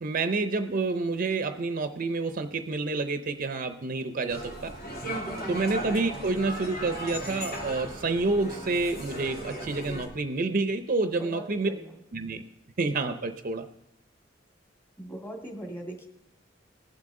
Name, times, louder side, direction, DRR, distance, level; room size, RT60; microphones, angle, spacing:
voice 1, 0.0-4.7 5.5-11.7 12.1-12.4 12.8-13.7, right 3 dB, 45° right, 8 dB, 0.5 m, -28 dB
sound 1, 4.3-10.1, equal, 50° left, 2.5 m, -37 dB
voice 2, 5.3-5.6 11.2-11.9 15.0-16.1, right 1 dB, 15° left, 1 dB, 2.0 m, -40 dB
18.5 x 7.8 x 3.7 m, 0.86 s
head